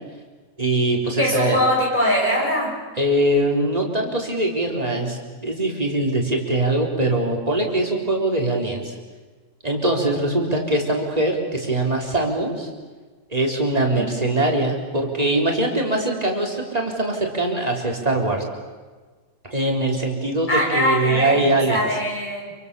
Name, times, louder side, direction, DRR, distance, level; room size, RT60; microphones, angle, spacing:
voice 1, 0.6-1.6 3.0-9.0 9.6-12.7 13.3-18.4 19.5-20.5 20.7-21.9, right 1 dB, 25° right, 0 dB, 4.1 m, -22 dB
voice 2, 1.2-2.8 13.9-14.1 20.5-22.5, equal, 30° left, -2 dB, 6.9 m, -22 dB
28.0 x 25.0 x 7.0 m, 1.4 s
omnidirectional pair, 1.6 m